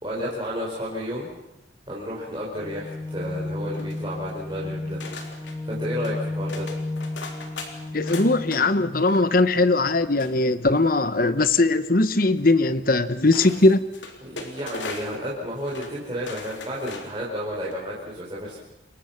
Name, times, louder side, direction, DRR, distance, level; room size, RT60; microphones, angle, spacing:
voice 1, 0.0-1.3 1.9-5.0 5.4-6.7 14.2-18.6, equal, 25° right, 4.8 m, -32 dB
sound 1, 2.6-8.5, left 2 dB, 15° left, 1.7 m, -32 dB
sound 2, 3.7-4.4 5.0-5.6 6.0-6.2 6.5-8.6 9.0-9.4 10.2-11.0 12.4-12.5 13.3-15.2 15.6-15.9 16.2-17.2 17.6-17.7, left 3 dB, 75° left, 3.6 m, -38 dB
voice 2, 7.9-13.9, left 2 dB, 50° left, 1.1 m, -20 dB
28.5 x 23.0 x 6.0 m
head